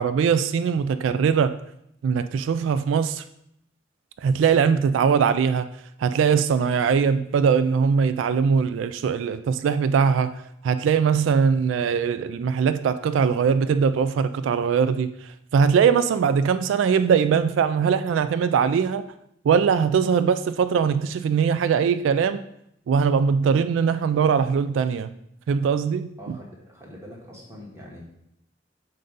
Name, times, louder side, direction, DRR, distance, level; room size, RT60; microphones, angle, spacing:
voice 1, 0.0-1.6 2.0-3.2 4.2-5.7 6.0-10.3 10.6-19.0 19.4-22.4 22.9-25.1 25.5-26.1, right 6 dB, 90° right, 0.3 m, -21 dB
voice 2, 26.2-28.0, equal, 15° right, 1.4 m, -43 dB
7.6 x 2.6 x 5.3 m
head